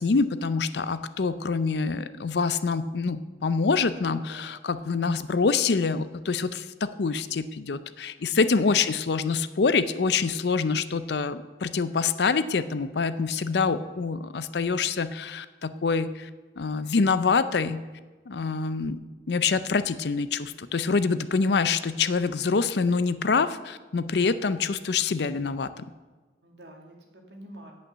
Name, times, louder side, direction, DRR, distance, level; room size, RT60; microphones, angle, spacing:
voice 1, 0.0-16.3 16.6-17.8 18.3-19.0 19.3-25.8, left 4 dB, 65° left, 13 dB, 0.5 m, -26 dB
voice 2, 8.2-8.5 26.4-27.7, right 1 dB, 70° right, 1 dB, 2.2 m, -47 dB
8.7 x 8.4 x 6.8 m, 1.3 s
head